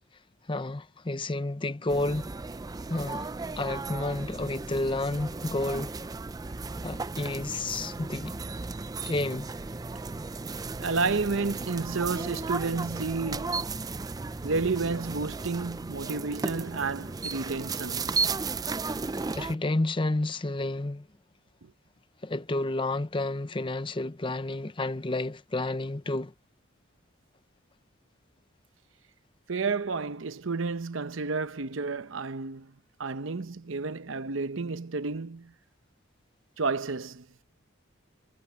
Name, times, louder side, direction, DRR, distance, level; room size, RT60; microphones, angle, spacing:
voice 1, 0.5-2.3 2.9-3.3 3.6-5.9 6.8-8.4 9.1-9.5 19.3-21.1 22.2-26.3, left 2 dB, 25° left, 0.7 m, -30 dB
sound 1, 1.9-19.6, right 4 dB, 20° right, 0.4 m, -35 dB
voice 2, 10.8-13.7 14.4-18.3 21.6-21.7 29.5-32.7 33.0-35.5 36.6-37.3, right 4 dB, 70° right, 0.8 m, -31 dB
head